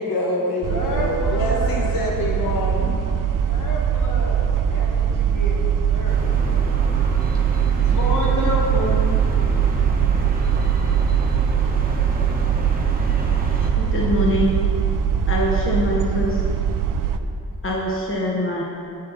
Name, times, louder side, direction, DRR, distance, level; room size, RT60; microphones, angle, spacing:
voice 1, 0.0-3.1, left 1 dB, 80° left, -2 dB, 1.1 m, -26 dB
sound 1, 0.6-17.2, right 8 dB, 70° right, 0.5 m, -21 dB
voice 2, 0.7-1.9 3.5-6.7 7.7-9.0, left 1 dB, 60° left, -3 dB, 1.8 m, -30 dB
sound 2, 6.0-13.7, right 1 dB, 25° right, 1.0 m, -31 dB
voice 3, 13.8-14.5 15.3-16.4 17.6-18.6, left 1 dB, 40° left, -2 dB, 0.9 m, -23 dB
9.4 x 8.3 x 4.0 m, 2.6 s
wide cardioid pair, 160°, 34 cm